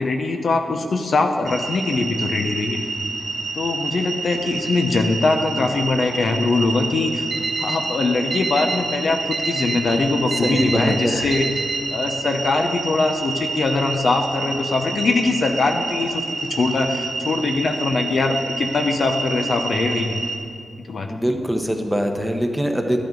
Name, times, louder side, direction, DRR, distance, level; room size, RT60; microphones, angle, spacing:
voice 1, 0.0-2.8 3.5-7.3 7.6-11.5 11.9-20.2 20.9-21.1, left 3 dB, 60° left, 4 dB, 0.8 m, -22 dB
sound 1, 1.5-20.4, right 3 dB, 75° right, 1.8 m, -29 dB
Alarm, 7.3-7.8 8.3-8.8 9.3-9.8 10.3-10.8 11.3-11.8, right 4 dB, 50° right, 1.1 m, -27 dB
voice 2, 10.4-11.3 21.1-23.0, equal, 5° right, 4 dB, 1.1 m, -23 dB
12.0 x 9.8 x 3.9 m, 2.4 s
cardioid pair, 75°, 0 cm